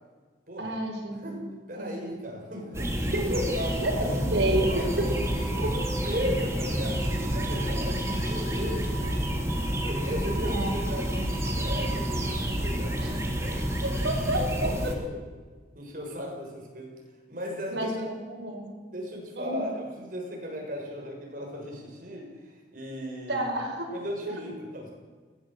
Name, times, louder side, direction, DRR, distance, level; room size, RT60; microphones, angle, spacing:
voice 1, 0.6-2.0 2.5-3.5 3.8-5.1 5.6-5.7 10.5-10.7 13.0-13.1 13.8-14.5 14.8-15.0 17.7-18.8 19.4-19.6 23.3-23.9 24.2-24.3, right 1 dB, 75° right, -1 dB, 5.7 m, -30 dB
voice 2, 1.1-1.4 1.7-2.9 3.3-3.7 4.0-5.0 5.3-5.7 6.0-13.7 14.4-15.2 15.7-16.9 17.3-17.9 18.9-23.5 23.9-24.9, equal, 50° right, 0 dB, 6.8 m, -36 dB
sound 1, 2.7-15.0, equal, 15° right, 3.0 m, -29 dB
22.0 x 18.0 x 7.8 m, 1.4 s
head